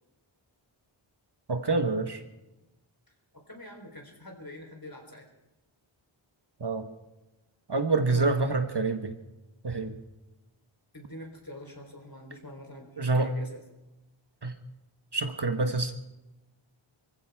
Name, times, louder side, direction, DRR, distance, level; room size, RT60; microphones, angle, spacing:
voice 1, 1.5-2.2 6.6-6.8 7.7-9.1 9.6-9.9 13.0-13.3 14.4-14.5 15.1-15.9, right 3 dB, 55° right, 6 dB, 1.4 m, -27 dB
voice 2, 3.3-5.2 8.1-8.3 10.9-13.6, left 1 dB, 45° left, 1 dB, 3.9 m, -44 dB
24.5 x 15.0 x 3.6 m, 1.0 s
wide cardioid pair, 45°, 49 cm